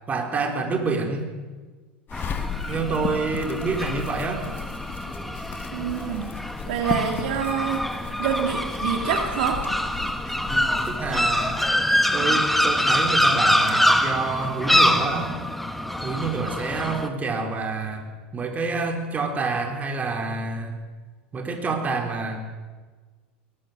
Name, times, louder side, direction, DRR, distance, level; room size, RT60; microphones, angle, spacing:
voice 1, 0.1-1.3 2.7-4.4 10.5-11.6 12.1-15.3 16.0-18.0 18.3-20.7 21.3-22.4, right 4 dB, 25° right, 3 dB, 4.4 m, -27 dB
sound 1, 2.1-11.7, left 7 dB, 35° left, 2.2 m, -35 dB
sound 2, 2.1-17.1, equal, ahead, 1.5 m, -25 dB
voice 2, 5.7-6.3 6.7-7.8 8.2-9.6, right 8 dB, 65° right, 4 dB, 2.4 m, -26 dB
22.0 x 18.5 x 6.7 m, 1.4 s
hypercardioid pair, 85°, 6 cm